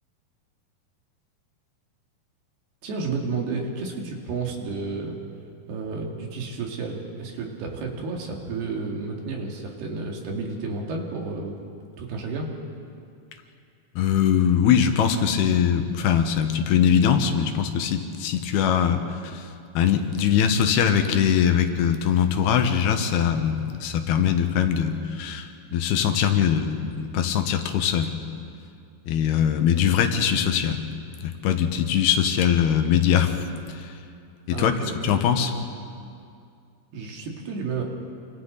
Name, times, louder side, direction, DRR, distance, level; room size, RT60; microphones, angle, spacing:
voice 1, 2.8-5.2 5.7-11.6 12.0-12.5 34.5-35.1 36.9-37.8, right 4 dB, 85° right, 0 dB, 4.2 m, -31 dB
voice 2, 14.0-28.1 29.1-30.8 31.2-33.4 33.7-33.9 34.5-34.7 35.0-35.5, left 8 dB, 90° left, 6 dB, 3.2 m, -22 dB
27.0 x 26.0 x 4.0 m, 2.4 s
omnidirectional pair, 4.4 m